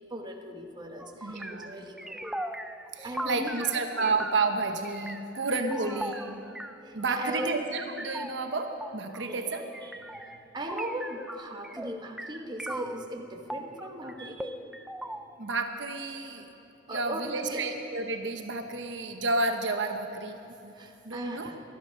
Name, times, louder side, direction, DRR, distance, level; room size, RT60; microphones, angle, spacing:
voice 1, 0.1-2.2 3.0-4.1 5.7-5.8 6.8-7.6 9.3-9.4 9.8-9.9 10.3-14.6 16.9-17.7 20.8-21.6, right 1 dB, 25° right, 2 dB, 1.1 m, -38 dB
sound 1, 1.0-13.1 13.5-15.9, right 1 dB, 5° right, 0.4 m, -40 dB
voice 2, 1.2-1.7 2.9-6.4 6.9-9.6 15.4-16.5 16.9-20.7 21.0-21.5, right 3 dB, 70° right, 5 dB, 0.9 m, -31 dB
18.0 x 12.0 x 5.5 m, 3.0 s
head